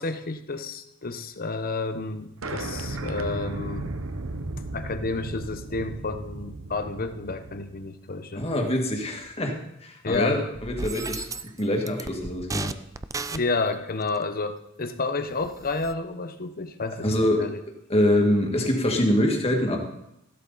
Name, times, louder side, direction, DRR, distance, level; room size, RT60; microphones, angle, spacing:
voice 1, 0.0-3.9 4.7-8.5 10.0-10.5 13.3-17.1 17.4-17.6, left 3 dB, 45° left, 9 dB, 1.0 m, -30 dB
sound 1, 2.4-7.7, right 2 dB, 70° right, 1.1 m, -35 dB
voice 2, 8.4-11.3 11.6-12.7 17.0-17.5 17.9-19.8, left 1 dB, 30° left, 2 dB, 2.1 m, -24 dB
sound 2, 10.1-10.2 10.5-11.6 11.9-13.7 14.9-15.0 15.3-15.9, right 3 dB, 15° right, 0.4 m, -34 dB
15.0 x 12.0 x 4.1 m, 0.82 s
head